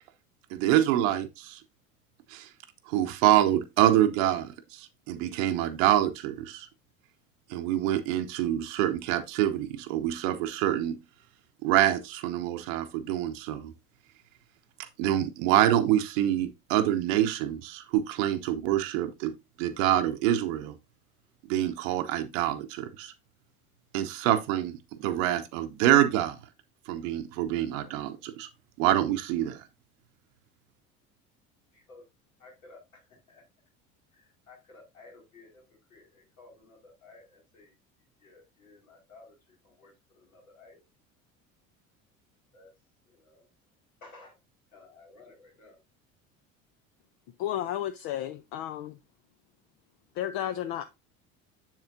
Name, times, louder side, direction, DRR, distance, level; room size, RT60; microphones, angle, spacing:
voice 1, 0.5-1.6 2.3-2.5 2.9-6.7 7.5-11.0 11.6-13.7 14.8-19.3 19.6-20.7 21.5-23.1 23.9-26.4 26.9-28.5 28.8-29.7, right 12 dB, 65° right, 0.8 m, -26 dB
voice 2, 31.7-32.0 32.4-33.4 34.1-37.7 38.2-40.8 42.5-42.7 43.0-43.5 44.0-44.4 44.7-45.8, left 3 dB, 80° left, 4.6 m, -55 dB
voice 3, 47.4-49.0 50.2-50.8, left 11 dB, 55° left, 0.7 m, -32 dB
7.4 x 7.4 x 2.6 m
hypercardioid pair, 65°, 42 cm